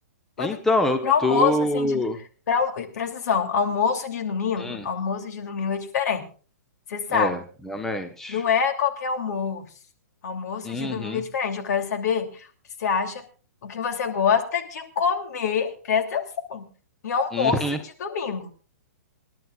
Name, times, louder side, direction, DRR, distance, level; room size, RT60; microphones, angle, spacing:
voice 1, 0.4-2.2 4.6-4.8 7.1-7.4 7.7-8.4 10.6-11.2 17.3-17.8, left 1 dB, 5° left, 7 dB, 1.0 m, -25 dB
voice 2, 1.0-2.1 2.5-6.3 6.9-7.4 8.3-9.6 10.2-12.5 12.8-13.2 13.6-16.7 17.0-18.5, left 6 dB, 60° left, 6 dB, 2.9 m, -26 dB
27.5 x 11.0 x 2.4 m, 0.38 s
hypercardioid pair, 150°, 10 cm